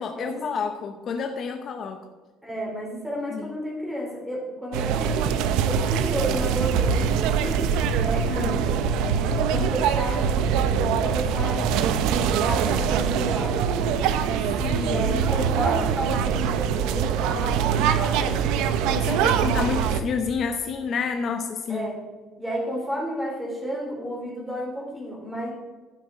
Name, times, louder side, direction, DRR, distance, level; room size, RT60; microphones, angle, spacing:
voice 1, 0.0-2.0 3.3-3.5 8.3-8.6 14.6-15.0 18.9-21.9, left 5 dB, 35° left, 5 dB, 0.8 m, -29 dB
voice 2, 2.4-5.2 5.6-11.8 12.1-13.7 14.8-18.9 21.7-22.0 22.4-25.5, equal, 5° right, -3 dB, 3.1 m, -32 dB
sound 1, 4.7-20.0, right 7 dB, 90° right, 0.8 m, -23 dB
11.5 x 9.5 x 4.9 m, 1.3 s
cardioid pair, 175°, 0 cm